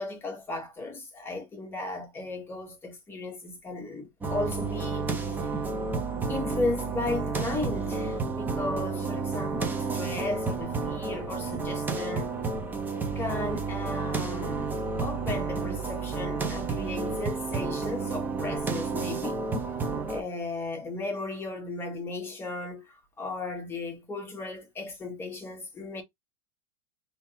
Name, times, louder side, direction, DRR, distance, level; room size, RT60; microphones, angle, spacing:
voice 1, 0.0-5.5 6.3-12.4 13.1-19.4 20.1-26.0, left 2 dB, 15° left, 1.6 m, -35 dB
sound 1, 4.2-20.2, right 4 dB, 10° right, 0.7 m, -31 dB
3.6 x 2.8 x 2.6 m
supercardioid pair, 155°, 18 cm